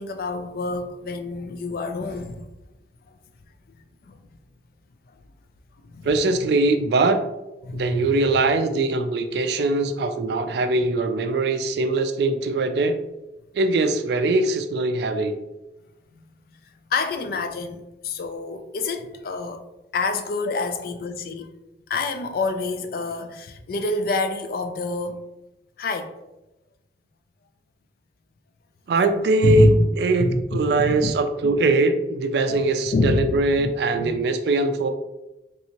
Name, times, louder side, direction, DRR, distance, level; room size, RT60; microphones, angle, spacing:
voice 1, 0.0-2.4 3.1-3.2 3.7-3.8 4.0-4.2 5.9-6.1 7.6-8.1 16.9-19.6 19.9-21.5 21.9-25.2 25.8-26.1 29.4-29.9 30.2-31.1 31.4-31.6 32.5-32.6 32.9-34.2, left 2 dB, 55° left, 0.3 m, -26 dB
voice 2, 6.0-7.2 7.7-13.0 13.5-15.4 28.9-34.9, right 3 dB, 65° right, 0.3 m, -22 dB
3.3 x 2.7 x 2.9 m
head